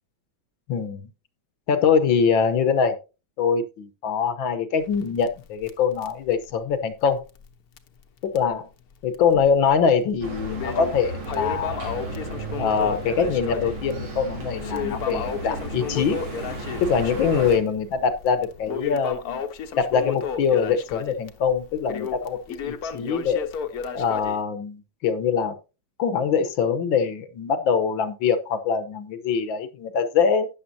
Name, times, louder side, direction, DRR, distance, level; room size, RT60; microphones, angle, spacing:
voice 1, 0.7-1.0 1.7-3.0 3.4-7.2 8.2-8.7 9.0-12.1 12.6-16.2 16.8-19.4 19.8-23.5 23.9-25.6 26.0-30.5, left 6 dB, 70° left, 9 dB, 1.7 m, -23 dB
Crackle, 4.8-7.5 7.8-7.9 8.4-8.5 9.1-9.7 10.1-24.4, left 7 dB, 55° left, 1.3 m, -33 dB
sound 1, 10.2-17.6, right 1 dB, 90° right, 4.0 m, -34 dB
12.5 x 9.6 x 2.7 m, 0.30 s
omnidirectional pair, 2.2 m